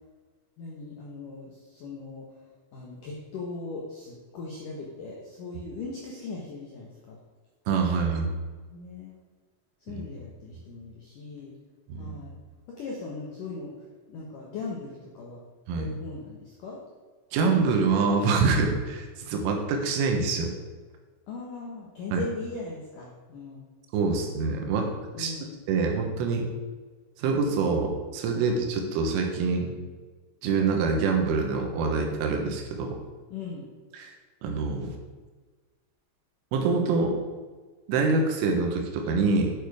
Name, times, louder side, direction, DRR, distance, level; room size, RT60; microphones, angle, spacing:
voice 1, 0.6-2.2 2.7-7.2 8.0-8.3 8.7-9.1 9.8-11.5 11.9-12.3 12.7-15.4 15.8-16.8 21.3-23.6 24.6-25.6 33.3-33.6, left 3 dB, 85° left, -3 dB, 1.8 m, -39 dB
voice 2, 7.7-8.3 9.9-10.0 11.9-12.2 15.7-15.9 17.3-20.5 22.1-22.2 23.9-24.9 25.2-25.3 25.7-26.5 27.2-29.7 30.4-33.0 33.9-34.1 34.4-34.9 36.5-37.2 37.9-39.5, right 4 dB, 80° right, 3 dB, 3.7 m, -25 dB
11.0 x 6.9 x 4.9 m, 1.4 s
omnidirectional pair, 5.9 m